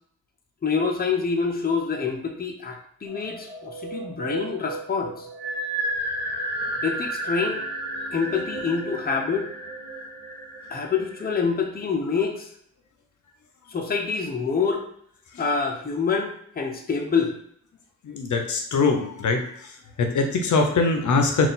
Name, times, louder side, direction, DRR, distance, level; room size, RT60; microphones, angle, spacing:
voice 1, 0.6-5.3 6.8-7.6 8.1-9.5 10.7-12.5 13.7-14.8 15.4-17.3, left 5 dB, 30° left, 2 dB, 0.7 m, -26 dB
sound 1, 3.1-11.4, right 1 dB, 35° right, 0.9 m, -32 dB
voice 2, 18.0-19.7 20.0-21.5, left 4 dB, 70° left, 4 dB, 0.6 m, -22 dB
3.9 x 2.5 x 3.9 m, 0.67 s
wide cardioid pair, 90°, 31 cm